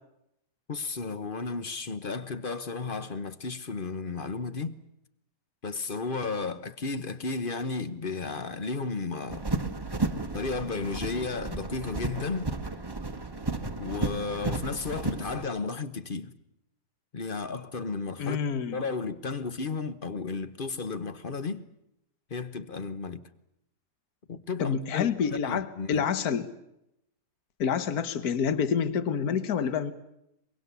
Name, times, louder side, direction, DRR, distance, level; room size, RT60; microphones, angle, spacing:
voice 1, 0.7-4.8 5.6-9.4 10.3-12.5 13.8-16.3 17.1-18.4 18.7-21.7 22.3-23.2 24.3-26.0, left 4 dB, 35° left, 1.0 m, -33 dB
sound 1, 9.3-15.5, right 3 dB, 15° right, 1.0 m, -33 dB
voice 2, 18.2-18.8 24.6-26.5 27.6-29.9, left 7 dB, 65° left, 1.7 m, -28 dB
23.0 x 22.5 x 8.2 m
omnidirectional pair, 1.8 m